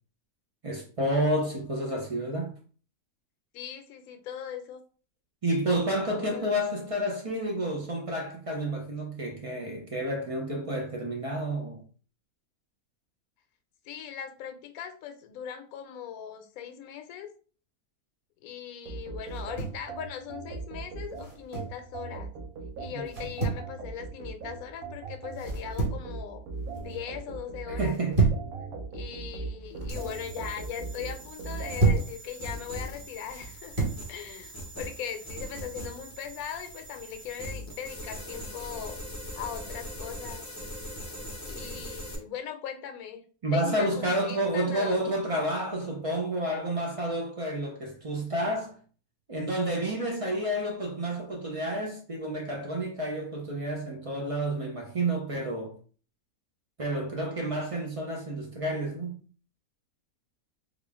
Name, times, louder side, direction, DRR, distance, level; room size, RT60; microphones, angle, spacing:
voice 1, 0.6-2.5 5.4-11.8 22.9-23.1 27.7-28.4 43.4-48.8 49.3-55.7 56.8-59.2, right 1 dB, 60° right, 0.3 m, -30 dB
voice 2, 3.5-4.8 6.1-6.5 13.8-17.3 18.4-22.3 22.8-26.4 26.8-28.0 28.9-39.0 39.4-40.4 41.5-43.2 43.5-45.0, left 9 dB, 75° left, 1.0 m, -39 dB
sound 1, 18.9-32.0, right 4 dB, 75° right, 1.3 m, -39 dB
sound 2, 19.3-19.8 21.2-21.8 23.1-23.7 25.4-26.1 26.5-27.0 27.8-28.5 29.5-30.1 31.4-32.1 33.3-34.0, right 3 dB, 25° right, 1.2 m, -29 dB
sound 3, 29.9-42.2, equal, 25° left, 0.3 m, -41 dB
3.6 x 2.4 x 3.4 m
omnidirectional pair, 1.6 m